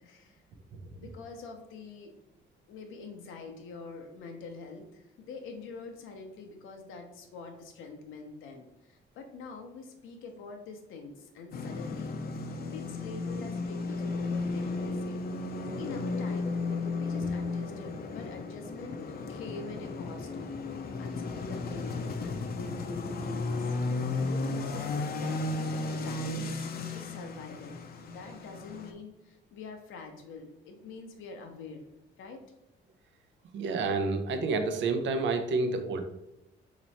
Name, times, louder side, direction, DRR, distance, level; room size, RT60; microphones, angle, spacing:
voice 1, 0.0-0.4 1.0-2.1 2.7-12.2 12.6-15.2 15.5-16.6 16.9-19.0 19.3-23.7 24.1-31.8 32.2-32.4, left 4 dB, 90° left, 4 dB, 0.8 m, -45 dB
sound 1, 11.5-28.9, left 3 dB, 50° left, 0.6 m, -34 dB
voice 2, 33.5-36.0, right 3 dB, 70° right, 7 dB, 0.6 m, -29 dB
3.2 x 3.0 x 4.1 m, 0.88 s
cardioid pair, 90°, 20 cm